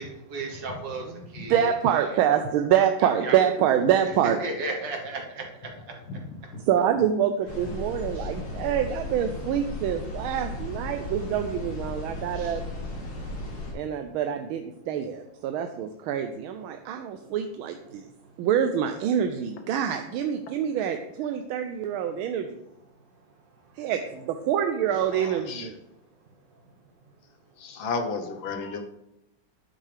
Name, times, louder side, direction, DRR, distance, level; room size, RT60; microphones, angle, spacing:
voice 1, 0.0-1.6 2.1-2.2 3.2-3.4 4.2-6.1 6.4-6.5 8.1-8.3 11.2-11.3 12.3-12.6 13.4-13.5 17.9-18.5 23.2-23.9 26.5-26.6, right 3 dB, 60° right, 2 dB, 1.8 m, -36 dB
voice 2, 1.5-4.4 6.6-12.6 13.7-18.1 18.4-22.6 23.8-25.7, right 9 dB, 85° right, 7 dB, 1.4 m, -26 dB
sound 1, 7.5-13.7, left 2 dB, 90° left, 3.2 m, -35 dB
voice 3, 25.1-25.8 27.6-28.8, left 4 dB, 70° left, 6 dB, 1.7 m, -33 dB
12.0 x 6.4 x 3.4 m, 0.84 s
omnidirectional pair, 2.3 m